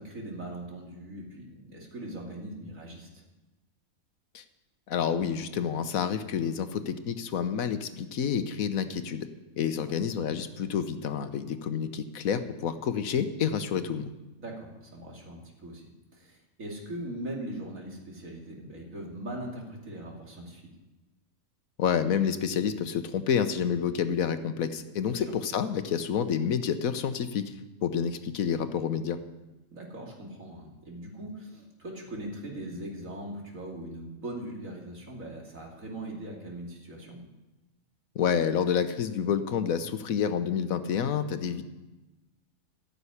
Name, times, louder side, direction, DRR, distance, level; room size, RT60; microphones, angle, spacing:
voice 1, 0.0-3.2 9.8-10.0 14.4-15.8 16.1-20.6 25.1-25.2 29.7-37.2, right 1 dB, 70° right, -1 dB, 3.0 m, -40 dB
voice 2, 4.9-9.3 9.6-14.1 21.8-27.5 27.8-29.2 38.1-41.6, left 7 dB, 85° left, 10 dB, 1.3 m, -29 dB
14.5 x 6.9 x 9.7 m, 1.1 s
omnidirectional pair, 1.4 m